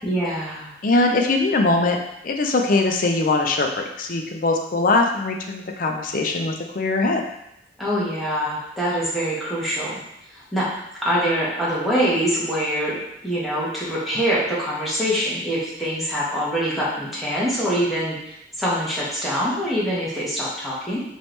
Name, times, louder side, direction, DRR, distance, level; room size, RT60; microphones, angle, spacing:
voice 1, 0.0-0.7 7.8-10.0 10.3-10.7 11.0-21.0, equal, ahead, -8 dB, 1.2 m, -24 dB
voice 2, 0.8-2.0 2.2-7.2, left 2 dB, 50° left, 3 dB, 0.5 m, -21 dB
4.6 x 3.1 x 3.2 m, 0.82 s
head